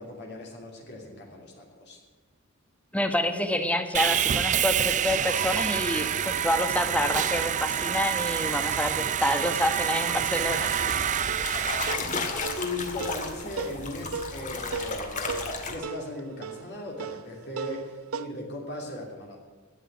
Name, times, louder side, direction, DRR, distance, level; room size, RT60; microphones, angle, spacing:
voice 1, 0.0-2.0 11.9-19.4, left 1 dB, 50° left, -1 dB, 3.0 m, -38 dB
voice 2, 2.9-10.7, left 1 dB, 5° left, 7 dB, 1.2 m, -28 dB
Sawing, 3.9-11.9, right 9 dB, 35° right, 0.4 m, -27 dB
sound 1, 10.7-15.8, left 3 dB, 35° left, 1.9 m, -34 dB
sound 2, 11.3-18.3, right 5 dB, 75° right, 0.8 m, -38 dB
12.5 x 9.3 x 9.3 m, 1.4 s
head